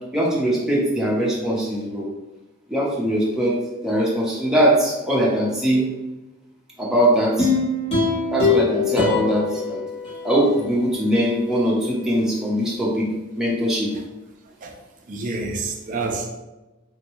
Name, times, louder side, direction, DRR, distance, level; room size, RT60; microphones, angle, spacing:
voice 1, 0.1-2.1 2.7-3.6 3.8-5.8 6.8-7.5 8.3-9.8 10.2-13.1 13.4-13.9, equal, 5° right, -6 dB, 0.7 m, -21 dB
sound 1, 7.4-10.7 11.1-11.2, left 4 dB, 30° left, 0.9 m, -23 dB
voice 2, 15.1-16.3, right 3 dB, 40° right, 2 dB, 0.4 m, -28 dB
3.5 x 2.2 x 2.9 m, 1.1 s
head